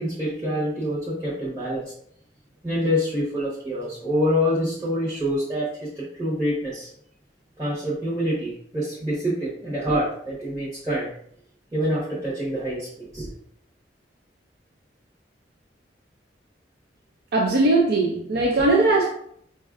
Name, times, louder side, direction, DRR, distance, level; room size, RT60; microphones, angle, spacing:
voice 1, 0.0-1.8 2.6-6.9 7.6-11.1 11.7-13.3, equal, 20° right, -10 dB, 1.0 m, -26 dB
voice 2, 17.3-19.1, right 2 dB, 60° right, 0 dB, 0.4 m, -19 dB
5.2 x 2.4 x 2.4 m, 0.67 s
head